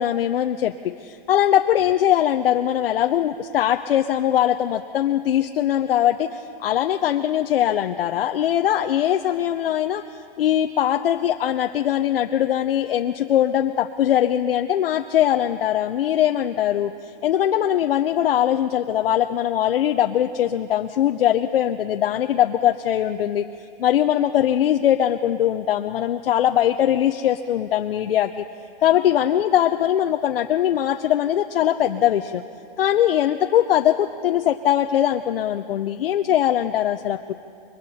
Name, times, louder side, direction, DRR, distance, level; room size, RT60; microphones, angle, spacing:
voice 1, 0.0-10.0 10.4-23.4 23.8-28.4 28.8-32.4 32.8-37.3, left 11 dB, 70° left, 5 dB, 0.8 m, -21 dB
28.5 x 22.5 x 4.3 m, 2.4 s
hypercardioid pair, 165°, 30 cm